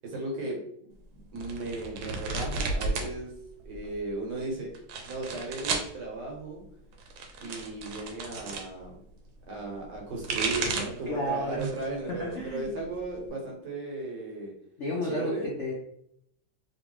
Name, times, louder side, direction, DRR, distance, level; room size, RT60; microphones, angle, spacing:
voice 1, 0.0-0.6 1.1-3.3 3.6-4.7 5.0-6.6 7.4-9.0 9.5-14.5 15.0-15.5, right 2 dB, 65° right, -1 dB, 1.5 m, -36 dB
sound 1, 1.4-3.1 3.4-4.1 4.7-5.9 6.9-8.7 9.9-11.0 11.5-11.9 12.3-13.3, right 3 dB, 85° right, 1.3 m, -33 dB
voice 2, 11.1-11.8 12.2-12.8 14.8-15.7, left 1 dB, 65° left, -3 dB, 0.7 m, -32 dB
3.2 x 2.9 x 3.0 m, 0.72 s
omnidirectional pair, 2.1 m